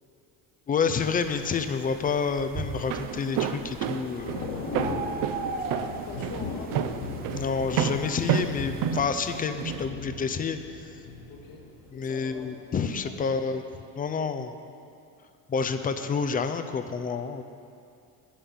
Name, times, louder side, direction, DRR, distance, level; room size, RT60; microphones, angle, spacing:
voice 1, 0.7-4.4 7.3-10.9 11.9-13.6 13.9-14.5 15.5-17.4, left 5 dB, 25° left, 9 dB, 0.4 m, -29 dB
sound 1, 1.0-9.0, right 4 dB, 25° right, 0.8 m, -39 dB
Thunder / Rain, 2.5-12.4 12.8-13.0, left 4 dB, 45° left, 1.5 m, -38 dB
Walk footsteps, 2.7-9.8, right 9 dB, 55° right, 0.6 m, -30 dB
voice 2, 5.3-6.8 11.3-11.6 11.9-12.7 13.0-13.4, left 4 dB, 65° left, 0 dB, 1.8 m, -44 dB
8.6 x 7.3 x 7.0 m, 2.5 s
cardioid pair, 130°, 38 cm